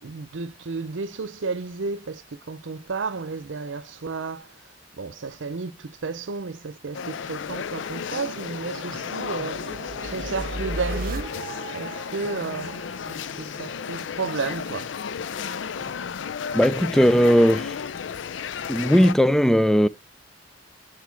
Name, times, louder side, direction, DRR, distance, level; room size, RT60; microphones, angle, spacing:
voice 1, 0.0-4.5 5.0-11.3 11.7-14.9, right 4 dB, 80° right, 0.6 m, -32 dB
sound 1, 6.9-19.1, left 6 dB, 75° left, 0.5 m, -33 dB
sound 2, 7.2-14.0, right 2 dB, 50° right, 1.1 m, -37 dB
voice 2, 16.5-17.8 18.7-19.9, equal, 5° left, 0.4 m, -18 dB
9.5 x 4.6 x 4.6 m
head